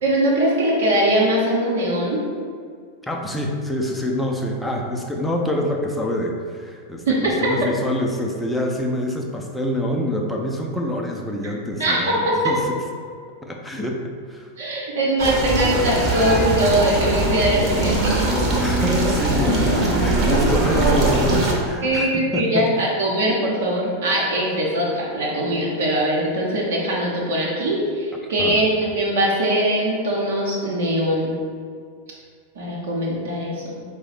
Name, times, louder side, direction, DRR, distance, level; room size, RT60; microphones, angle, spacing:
voice 1, 0.0-2.2 7.1-7.5 11.8-12.5 14.6-18.3 21.8-31.4 32.6-33.8, right 1 dB, 60° right, -4 dB, 0.8 m, -21 dB
voice 2, 3.0-12.6 13.4-14.0 14.3-14.5 18.6-22.7 28.4-28.6, left 1 dB, 5° left, 0 dB, 0.5 m, -26 dB
sound 1, 15.2-21.5, right 2 dB, 30° right, 0.8 m, -21 dB
4.7 x 2.1 x 4.1 m, 2.1 s
figure-of-eight pair, 90°, 0 cm